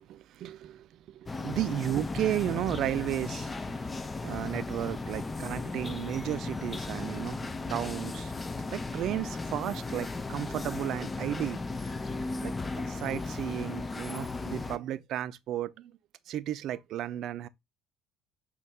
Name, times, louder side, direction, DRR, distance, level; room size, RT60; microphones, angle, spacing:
voice 1, 0.0-3.8 4.2-8.3 8.7-11.6 12.4-15.9 16.3-17.5, right 12 dB, 50° right, 0.5 m, -34 dB
sound 1, 1.3-14.8, left 3 dB, 20° left, 0.6 m, -36 dB
6.3 x 3.2 x 4.9 m
figure-of-eight pair, 55°, 0 cm